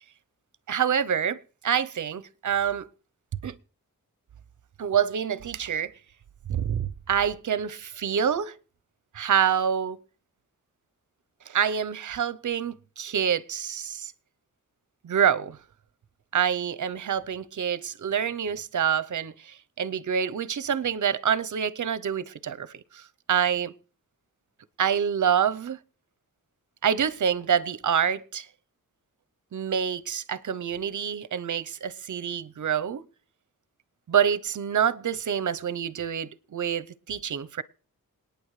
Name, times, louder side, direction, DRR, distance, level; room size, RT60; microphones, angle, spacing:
voice 1, 0.7-1.4 1.6-2.9 3.4-3.6 4.8-5.9 6.5-8.5 9.1-10.0 11.5-14.1 15.0-15.6 16.3-23.0 23.3-23.7 24.8-25.8 26.8-28.5 29.5-33.0 34.1-37.6, right 8 dB, 60° right, 0.7 m, -26 dB
27.5 x 9.3 x 3.2 m
cardioid pair, 80°, 35 cm